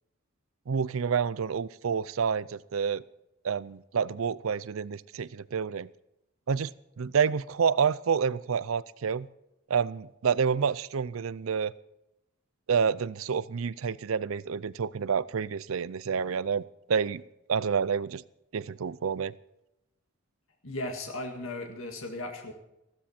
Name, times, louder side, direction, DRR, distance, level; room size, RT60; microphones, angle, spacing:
voice 1, 0.7-3.0 3.4-5.9 6.5-9.3 9.7-11.7 12.7-17.2 17.5-18.2 18.5-19.3, right 6 dB, 80° right, 19 dB, 0.5 m, -28 dB
voice 2, 20.6-22.5, left 2 dB, 80° left, 3 dB, 1.9 m, -36 dB
15.0 x 13.0 x 4.3 m, 0.89 s
head